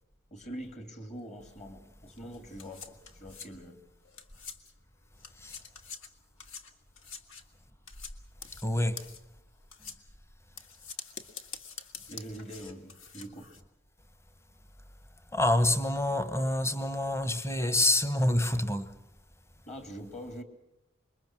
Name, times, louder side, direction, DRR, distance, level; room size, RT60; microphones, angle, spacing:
voice 1, 0.3-3.8 12.1-13.5 19.7-20.4, equal, 35° left, 2.8 m, -44 dB
sound 1, 2.1-4.9 5.2-13.6, left 5 dB, 65° left, 1.8 m, -46 dB
voice 2, 8.6-9.1 15.3-18.9, left 1 dB, 15° left, 1.1 m, -27 dB
26.5 x 22.0 x 6.2 m
head